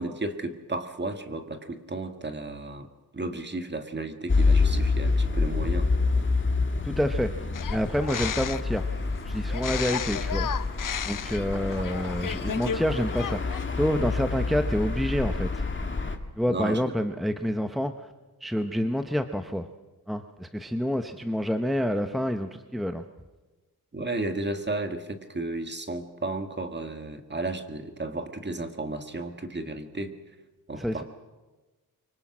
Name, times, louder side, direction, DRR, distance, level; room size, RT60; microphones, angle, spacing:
voice 1, 0.0-2.9 3.1-5.9 16.5-16.9 23.9-30.1 30.7-31.0, right 2 dB, 30° right, 7 dB, 1.9 m, -33 dB
sound 1, 4.3-16.2, left 3 dB, 30° left, 2.0 m, -27 dB
voice 2, 6.8-7.3 7.7-8.9 9.3-10.5 11.0-15.6 16.4-18.1 18.4-19.7 20.1-23.1 30.7-31.0, equal, ahead, 7 dB, 0.9 m, -28 dB
sound 2, 7.5-8.8 9.5-12.8 13.1-13.6, left 8 dB, 60° left, 0.8 m, -33 dB
25.0 x 24.0 x 6.2 m, 1.2 s
wide cardioid pair, 115°, 37 cm